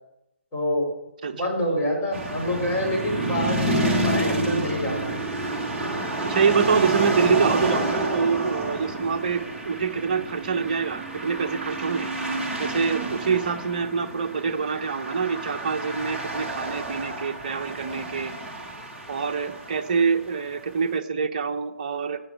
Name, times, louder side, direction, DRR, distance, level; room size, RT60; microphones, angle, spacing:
voice 1, 0.5-0.9 1.4-5.2, left 1 dB, 20° left, -4 dB, 4.7 m, -26 dB
sound 1, 2.1-20.5, right 2 dB, 10° right, 1.0 m, -29 dB
voice 2, 6.2-12.1 12.6-18.3 19.1-22.2, right 5 dB, 40° right, 7 dB, 0.8 m, -25 dB
15.5 x 7.0 x 4.8 m, 0.86 s
figure-of-eight pair, 140°, 7 cm